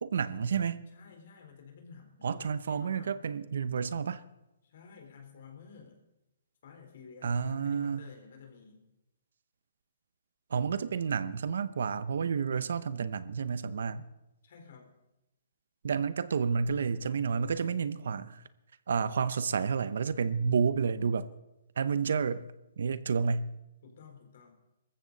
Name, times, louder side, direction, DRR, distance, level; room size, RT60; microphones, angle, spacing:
voice 1, 0.0-0.9 2.2-4.2 7.2-8.0 10.5-14.1 15.8-18.4 18.9-21.3 21.8-22.5 22.8-23.5, right 6 dB, 70° right, 0.8 m, -30 dB
voice 2, 0.9-3.2 4.6-6.0 6.6-8.8 14.4-14.9 23.8-24.5, left 6 dB, 55° left, 4.0 m, -52 dB
20.0 x 14.5 x 4.1 m
hypercardioid pair, 160°, 0 cm